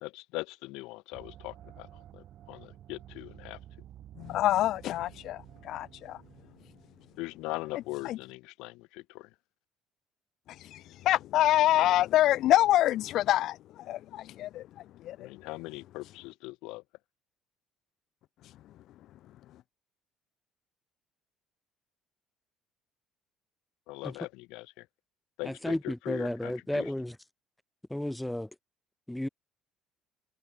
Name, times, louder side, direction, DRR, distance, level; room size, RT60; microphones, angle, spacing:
voice 1, 0.0-1.9 2.1-3.6 7.2-9.3 15.2-16.8 23.9-24.9 25.4-26.9, left 22 dB, 85° left, 1.9 m, -40 dB
sound 1, 1.1-7.9, right 12 dB, 45° right, 5.9 m, -52 dB
voice 2, 4.2-6.2 8.0-8.2 10.5-15.3, left 14 dB, 55° left, 0.7 m, -26 dB
voice 3, 25.4-27.2 27.9-28.5 29.1-29.3, left 1 dB, 5° left, 0.3 m, -33 dB
cardioid pair, 165°, 0 cm